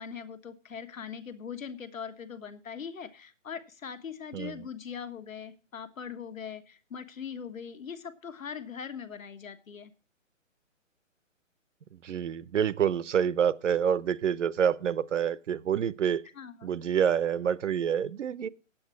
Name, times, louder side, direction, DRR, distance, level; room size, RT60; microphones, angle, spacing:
voice 1, 0.0-9.9 16.3-16.7, left 7 dB, 80° left, 1.6 m, -41 dB
voice 2, 4.3-4.6 11.9-16.2 16.6-18.5, right 8 dB, 65° right, 0.8 m, -27 dB
9.0 x 8.6 x 6.2 m
hypercardioid pair, 160°, 40 cm